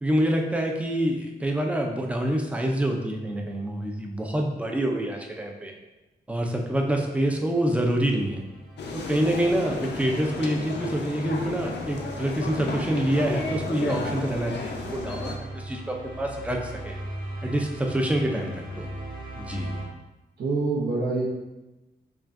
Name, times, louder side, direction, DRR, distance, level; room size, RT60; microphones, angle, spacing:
voice 1, 0.0-5.7 6.3-8.4 8.9-17.0 17.4-18.9 19.4-19.8, right 1 dB, 5° right, 1 dB, 0.4 m, -26 dB
sound 1, 7.0-19.8, right 1 dB, 25° right, 1.4 m, -40 dB
sound 2, 8.8-15.4, left 3 dB, 80° left, 0.5 m, -33 dB
voice 2, 20.4-21.3, right 3 dB, 70° right, -5 dB, 0.8 m, -25 dB
5.8 x 2.3 x 2.5 m, 1.0 s
wide cardioid pair, 155°, 18 cm